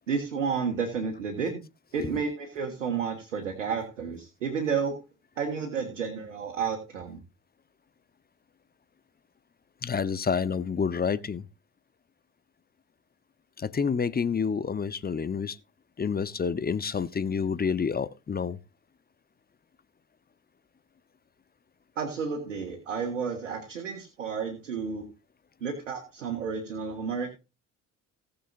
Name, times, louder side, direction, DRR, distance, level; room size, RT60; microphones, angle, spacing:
voice 1, 0.1-1.6 1.9-5.0 5.4-7.2 22.0-25.1 25.6-27.4, right 6 dB, 90° right, 1.7 m, -31 dB
voice 2, 9.8-11.4 13.6-15.6 16.0-18.6, left 6 dB, 25° left, 1.0 m, -28 dB
19.0 x 6.9 x 2.6 m
hypercardioid pair, 55°, 37 cm